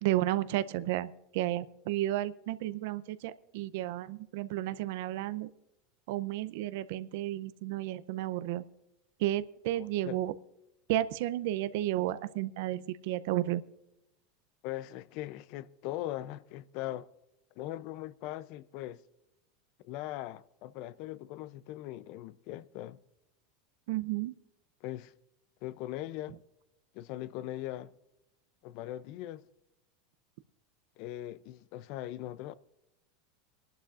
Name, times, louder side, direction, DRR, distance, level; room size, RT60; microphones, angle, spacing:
voice 1, 0.0-5.5 6.1-8.6 9.2-10.3 10.9-13.6 23.9-24.3, right 14 dB, 70° right, 0.5 m, -32 dB
voice 2, 9.7-10.2 14.6-17.1 17.6-19.0 19.8-23.0 24.8-25.1 25.6-26.4 26.9-27.9 28.6-29.4 31.0-32.5, left 14 dB, 55° left, 0.5 m, -40 dB
24.5 x 11.5 x 2.5 m
supercardioid pair, 135°, 0 cm